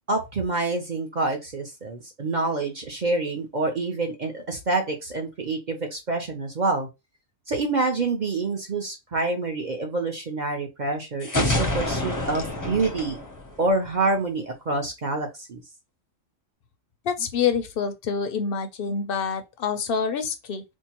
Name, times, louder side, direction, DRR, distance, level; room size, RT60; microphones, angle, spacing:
voice 1, 0.1-6.9 7.5-13.2 13.6-15.6, right 3 dB, 45° right, 0.7 m, -27 dB
sound 1, 11.2-14.1, left 2 dB, 20° left, 0.5 m, -27 dB
voice 2, 17.0-20.6, left 6 dB, 60° left, 0.6 m, -27 dB
4.5 x 2.1 x 2.9 m
omnidirectional pair, 1.3 m